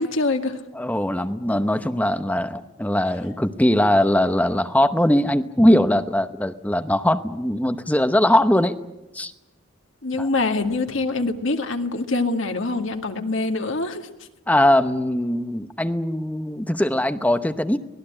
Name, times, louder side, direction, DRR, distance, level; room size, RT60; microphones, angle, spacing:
voice 1, 0.0-0.6 10.0-14.1, left 3 dB, 65° left, 5 dB, 2.1 m, -24 dB
voice 2, 0.7-8.7 9.1-9.3 10.2-10.3 14.5-17.8, left 1 dB, 5° left, 10 dB, 0.8 m, -20 dB
26.0 x 19.0 x 8.8 m, 0.96 s
head